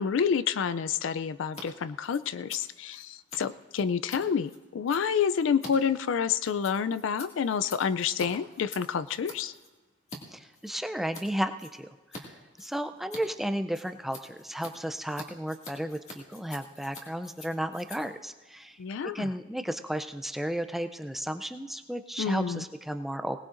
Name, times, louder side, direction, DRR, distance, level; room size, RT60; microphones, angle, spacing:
voice 1, 0.0-9.5 18.8-19.3 22.2-22.7, left 7 dB, 65° left, 14 dB, 0.4 m, -28 dB
Scissors, 1.4-1.6 1.9-10.2 10.5-11.3 11.6-12.2 12.5-19.3, left 2 dB, 35° left, 2.1 m, -47 dB
voice 2, 10.3-12.3 12.6-18.8 19.1-23.4, equal, ahead, 9 dB, 0.4 m, -33 dB
21.5 x 18.5 x 2.5 m, 1.2 s
head